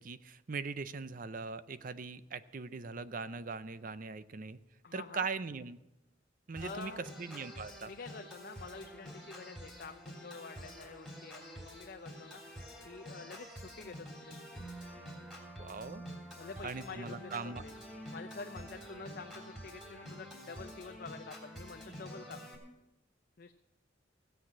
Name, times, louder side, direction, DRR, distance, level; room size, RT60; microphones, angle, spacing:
voice 1, 0.0-4.6 4.9-5.8 6.5-6.9 7.2-7.9 15.6-16.0 16.6-17.6, right 4 dB, 45° right, 14 dB, 0.5 m, -40 dB
voice 2, 4.8-5.3 6.6-7.1 7.9-12.4 12.8-14.5 16.4-17.7 18.1-22.4 23.4-23.5, left 4 dB, 50° left, 6 dB, 0.5 m, -48 dB
Organ, 6.6-22.6, equal, ahead, 3.3 m, -48 dB
16.5 x 8.0 x 7.4 m, 0.95 s
head